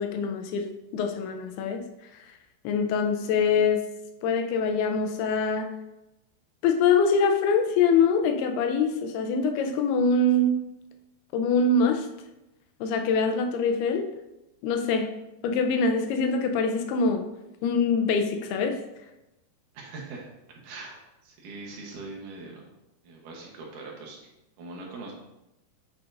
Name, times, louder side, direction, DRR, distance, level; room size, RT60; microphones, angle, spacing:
voice 1, 0.0-1.8 2.6-3.8 4.2-5.7 6.6-10.6 11.3-12.1 12.8-14.1 14.6-15.1 15.4-17.2 17.6-18.8, left 4 dB, 80° left, 6 dB, 2.5 m, -24 dB
voice 2, 19.7-20.3 20.6-21.0 21.2-22.7 23.0-24.2 24.6-25.1, right 3 dB, 70° right, -1 dB, 2.3 m, -41 dB
8.4 x 5.1 x 2.6 m, 0.92 s
omnidirectional pair, 4.6 m